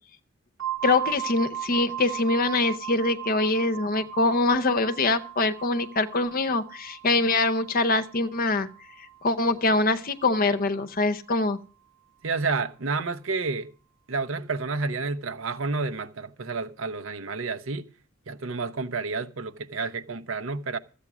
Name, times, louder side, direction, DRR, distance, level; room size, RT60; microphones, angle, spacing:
sound 1, 0.6-10.2, right 11 dB, 85° right, 1.3 m, -38 dB
voice 1, 0.8-8.7 9.2-11.6, left 3 dB, 45° left, 0.7 m, -24 dB
voice 2, 12.2-13.7 14.1-17.8 18.3-20.8, right 4 dB, 70° right, 0.8 m, -30 dB
13.5 x 8.4 x 6.1 m
head